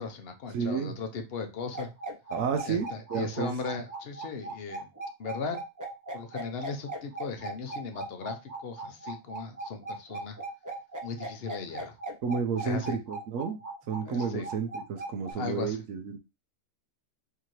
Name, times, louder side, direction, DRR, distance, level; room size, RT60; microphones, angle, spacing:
voice 1, 0.0-1.9 2.6-4.9 5.2-5.6 6.1-10.4 11.0-11.9 12.6-13.0 14.0-14.5 15.4-15.8, left 5 dB, 50° left, 0.9 m, -37 dB
voice 2, 0.5-0.9 2.3-3.5 12.2-13.6 13.9-16.2, right 6 dB, 75° right, 1.1 m, -31 dB
sound 1, 1.7-15.3, right 2 dB, 20° right, 0.5 m, -38 dB
4.8 x 2.8 x 3.0 m
omnidirectional pair, 1.5 m